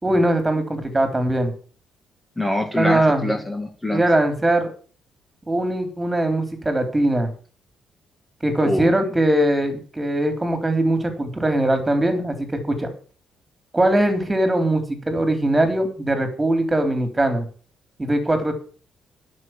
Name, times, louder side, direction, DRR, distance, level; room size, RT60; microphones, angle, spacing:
voice 1, 0.0-1.5 2.8-3.3 3.9-4.7 5.5-7.3 8.4-12.9 13.7-17.4 18.0-18.6, right 1 dB, 15° right, 7 dB, 3.6 m, -21 dB
voice 2, 2.4-4.0 8.6-8.9, left 1 dB, 10° left, 3 dB, 2.3 m, -24 dB
9.7 x 7.0 x 9.1 m, 0.41 s
cardioid pair, 90°, 0 cm